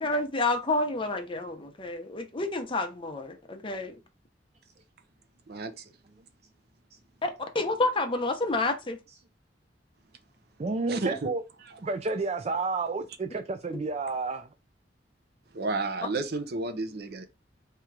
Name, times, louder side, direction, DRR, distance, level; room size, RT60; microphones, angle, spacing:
voice 1, 0.0-4.0 7.2-9.0, left 2 dB, 30° left, 0.8 m, -29 dB
voice 2, 5.5-5.9 10.9-11.3 15.5-17.2, right 3 dB, 60° right, 0.7 m, -32 dB
voice 3, 10.6-11.4 11.8-14.5, right 3 dB, 35° right, 0.4 m, -30 dB
3.6 x 3.0 x 4.6 m
head